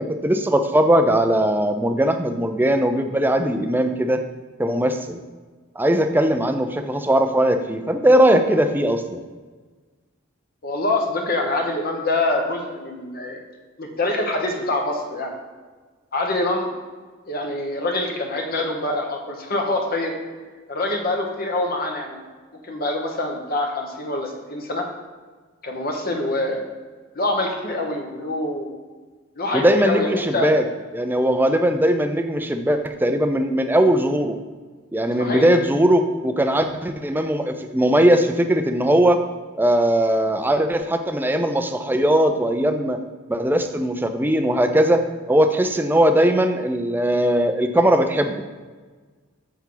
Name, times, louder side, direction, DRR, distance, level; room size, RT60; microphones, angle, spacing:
voice 1, 0.0-4.2 4.6-5.2 5.8-9.2 29.5-30.6 30.9-34.4 34.9-39.2 39.6-43.0 43.3-45.0 45.3-48.4, right 1 dB, 10° right, 7 dB, 0.5 m, -19 dB
voice 2, 10.6-13.4 13.8-15.3 16.1-16.7 17.3-20.1 20.7-22.2 22.6-24.8 25.6-26.7 27.1-28.7 29.4-30.5 35.2-35.5, left 2 dB, 50° left, 2 dB, 1.2 m, -25 dB
7.1 x 7.1 x 3.9 m, 1.4 s
head